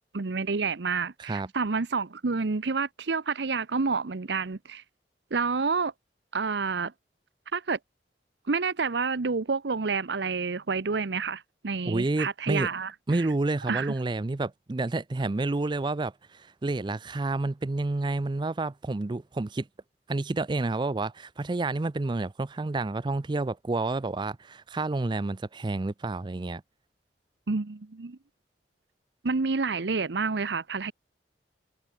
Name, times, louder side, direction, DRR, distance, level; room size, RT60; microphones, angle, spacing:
voice 1, 0.1-4.8 5.3-5.9 6.3-6.9 7.5-7.8 8.5-12.9 13.7-13.9 27.5-28.2 29.2-30.9, right 4 dB, 80° right, 0.8 m, -29 dB
voice 2, 1.2-1.5 11.8-12.7 13.1-19.7 20.1-26.6, right 2 dB, 25° right, 0.4 m, -29 dB
head